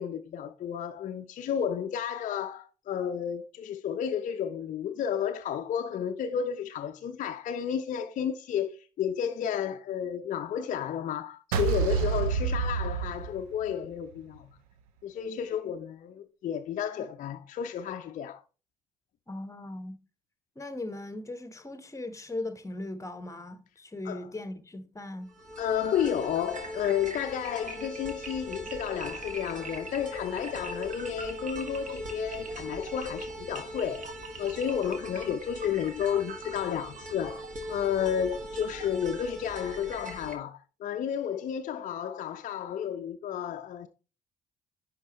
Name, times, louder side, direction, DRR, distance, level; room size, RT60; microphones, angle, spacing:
voice 1, 0.0-14.5 15.0-18.4 24.0-24.3 25.6-34.1 34.4-43.9, left 8 dB, 45° left, 0.5 m, -32 dB
sound 1, 11.5-13.9, right 6 dB, 75° right, 0.7 m, -28 dB
voice 2, 19.3-20.0 20.6-25.3, left 2 dB, 15° left, 1.0 m, -38 dB
sound 2, 25.3-40.3, right 1 dB, 45° right, 1.6 m, -40 dB
10.5 x 3.9 x 2.9 m
figure-of-eight pair, 45°, 18 cm